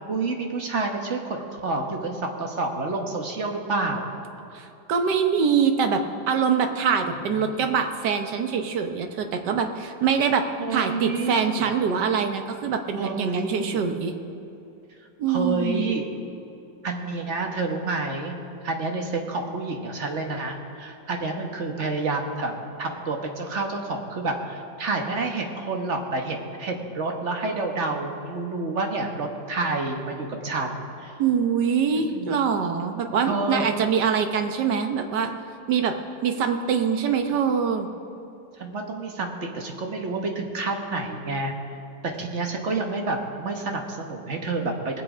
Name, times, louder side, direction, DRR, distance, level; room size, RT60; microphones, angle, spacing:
voice 1, 0.1-4.1 7.3-7.7 10.6-11.7 13.0-13.8 15.3-16.1 16.8-18.3 18.6-31.1 32.1-32.6 33.2-33.7 38.6-41.5 42.0-45.0, right 3 dB, 45° right, 2 dB, 1.5 m, -29 dB
voice 2, 4.5-10.5 10.7-14.1 15.2-15.9 31.2-35.3 35.7-36.0 36.2-37.9, right 6 dB, 80° right, 6 dB, 1.6 m, -24 dB
20.0 x 7.9 x 5.0 m, 2.9 s
omnidirectional pair, 1.8 m